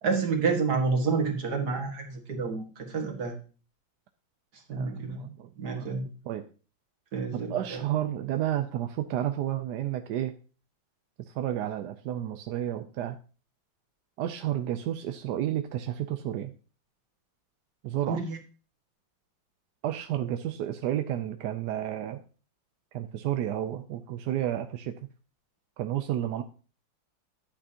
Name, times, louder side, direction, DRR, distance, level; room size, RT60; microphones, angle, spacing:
voice 1, 0.0-3.4 4.7-5.2 5.6-6.0 7.1-7.8 18.1-18.4, right 4 dB, 55° right, 2 dB, 2.2 m, -29 dB
voice 2, 4.8-6.0 6.3-6.4 7.3-10.3 11.3-13.2 14.2-16.5 17.8-18.2 19.8-22.2 22.9-24.9 25.8-26.4, right 12 dB, 70° right, 8 dB, 1.1 m, -31 dB
10.5 x 8.6 x 2.8 m, 0.37 s
omnidirectional pair, 2.0 m